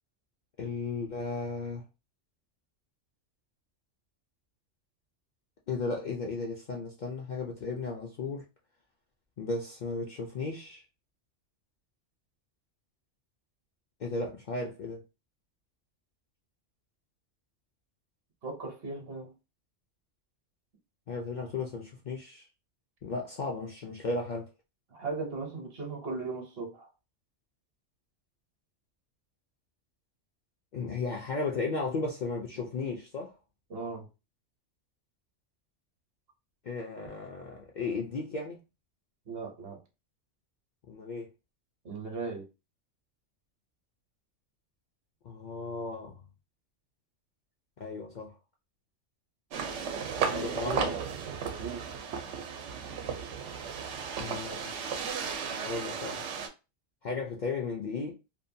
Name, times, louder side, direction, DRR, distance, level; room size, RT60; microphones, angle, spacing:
voice 1, 0.6-1.8 5.7-8.4 9.4-10.8 14.0-15.0 21.1-22.5 23.0-24.5 30.7-33.3 36.6-38.6 40.9-41.3 45.2-46.2 47.8-48.3 50.2-50.9 54.2-54.7 55.6-56.2 57.0-58.1, left 3 dB, 60° left, 0.5 m, -35 dB
voice 2, 18.4-19.3 24.9-26.9 33.7-34.1 39.3-39.8 41.8-42.5 50.3-51.0 51.6-51.9, right 4 dB, 60° right, 0.9 m, -37 dB
sound 1, 49.5-56.5, right 6 dB, 80° right, 0.9 m, -35 dB
2.7 x 2.2 x 2.6 m
omnidirectional pair, 1.2 m